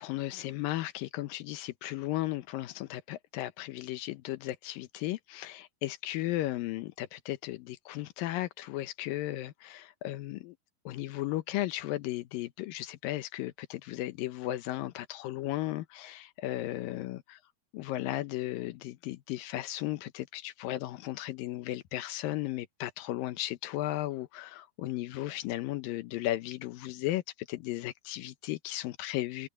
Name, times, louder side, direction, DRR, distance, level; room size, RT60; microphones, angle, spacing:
voice 1, 0.0-10.6 10.9-17.4 17.7-29.5, left 15 dB, 75° left, 2.3 m, -35 dB
omnidirectional pair, 4.6 m